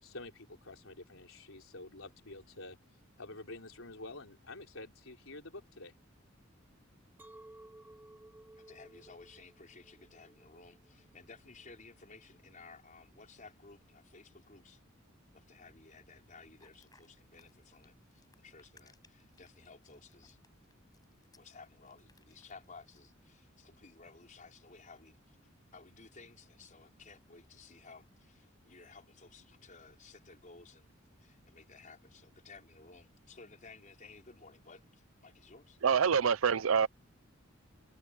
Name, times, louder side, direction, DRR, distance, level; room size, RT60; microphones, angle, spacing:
voice 1, 0.0-2.8 3.2-5.9, left 2 dB, 75° left, 4.0 m, -48 dB
Chink clink, 7.2-12.4, right 1 dB, 10° right, 0.9 m, -57 dB
voice 2, 8.6-14.8 15.3-20.4 21.3-25.4 25.7-30.9 31.2-35.8, left 4 dB, 40° left, 5.3 m, -56 dB
sound 1, 16.6-23.1, left 4 dB, 20° left, 5.6 m, -67 dB
voice 3, 35.8-36.9, right 6 dB, 90° right, 0.6 m, -26 dB
head